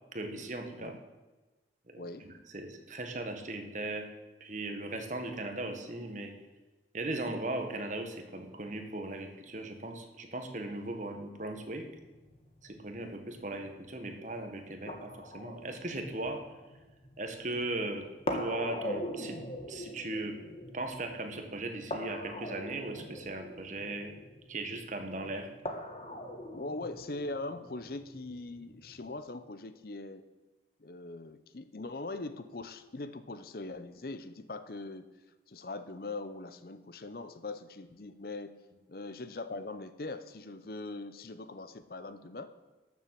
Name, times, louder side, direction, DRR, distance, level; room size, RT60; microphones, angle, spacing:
voice 1, 0.1-1.0 1.9-4.1 4.4-6.3 6.9-11.9 12.6-16.4 17.2-19.4 19.7-20.4 20.7-24.1 24.5-25.5, right 2 dB, 45° right, 5 dB, 1.5 m, -38 dB
voice 2, 2.0-2.3 26.5-30.2 30.8-35.1 35.5-38.6 38.9-42.5, left 2 dB, 55° left, 12 dB, 0.7 m, -41 dB
sound 1, 11.5-29.1, equal, 35° left, 1.5 m, -43 dB
12.5 x 7.2 x 7.6 m, 1.2 s
head